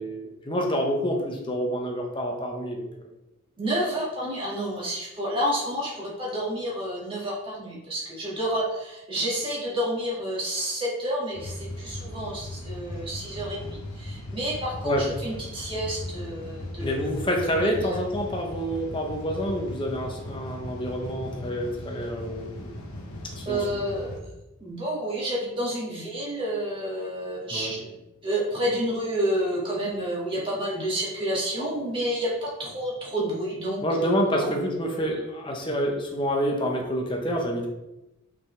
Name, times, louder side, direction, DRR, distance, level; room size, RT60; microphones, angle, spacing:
voice 1, 0.0-2.9 14.8-15.0 16.8-22.8 23.4-23.6 27.5-27.7 33.8-37.7, equal, 20° left, 1 dB, 0.9 m, -28 dB
voice 2, 3.6-17.0 17.7-18.0 23.5-24.1 24.6-34.5, equal, 25° right, -6 dB, 2.0 m, -30 dB
sound 1, 11.3-24.2, left 1 dB, 90° left, 1.1 m, -38 dB
5.5 x 5.3 x 3.3 m, 0.95 s
head